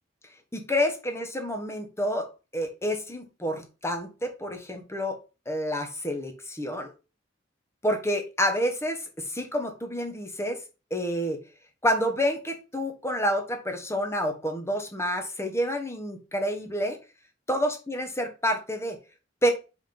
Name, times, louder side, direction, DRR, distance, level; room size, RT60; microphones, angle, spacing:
voice 1, 0.5-2.3 2.5-5.2 5.5-6.9 7.8-10.6 10.9-11.4 11.8-17.0 17.5-19.0 19.4-19.5, equal, 15° left, 5 dB, 1.2 m, -28 dB
5.6 x 3.7 x 5.2 m, 0.31 s
head